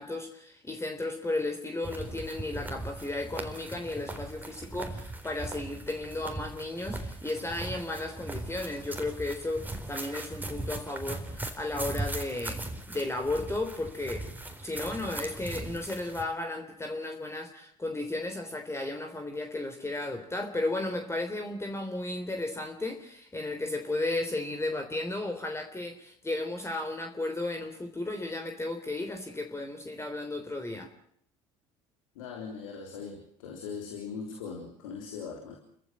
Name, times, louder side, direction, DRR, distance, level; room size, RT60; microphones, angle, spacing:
voice 1, 0.0-12.6 12.9-14.2 14.6-30.9, left 2 dB, 15° left, 5 dB, 3.5 m, -34 dB
sound 1, 1.8-16.2, right 2 dB, 10° right, 4.1 m, -39 dB
voice 2, 32.2-35.6, left 5 dB, 85° left, 2 dB, 3.7 m, -40 dB
30.0 x 14.5 x 7.5 m, 0.67 s
hypercardioid pair, 70°, 17 cm